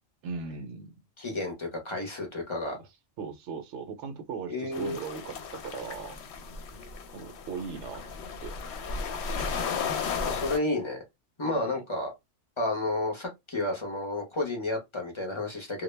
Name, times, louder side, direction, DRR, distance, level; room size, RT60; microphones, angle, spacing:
voice 1, 0.2-1.0 3.2-6.2 7.1-8.0 8.4-8.5 11.5-11.8, right 5 dB, 70° right, 0.8 m, -38 dB
voice 2, 1.2-2.8 4.5-5.0 10.2-11.0 11.4-12.1 12.6-15.8, left 2 dB, 35° left, 0.5 m, -31 dB
sound 1, 4.7-10.6, left 5 dB, 65° left, 0.8 m, -35 dB
2.2 x 2.0 x 3.1 m
omnidirectional pair, 1.3 m